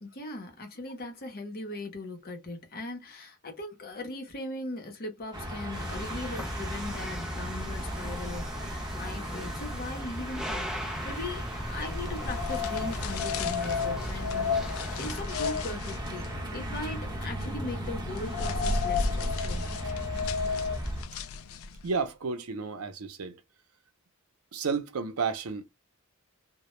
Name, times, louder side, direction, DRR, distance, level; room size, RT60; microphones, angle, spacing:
voice 1, 0.0-19.7, left 2 dB, 45° left, 0.8 m, -39 dB
sound 1, 5.3-21.0, equal, 20° right, 0.9 m, -36 dB
sound 2, 5.7-15.2, equal, 5° right, 0.4 m, -39 dB
sound 3, 11.9-21.9, left 5 dB, 70° left, 0.3 m, -33 dB
voice 2, 21.8-23.4 24.5-25.7, right 5 dB, 90° right, 0.6 m, -32 dB
2.1 x 2.1 x 2.9 m
head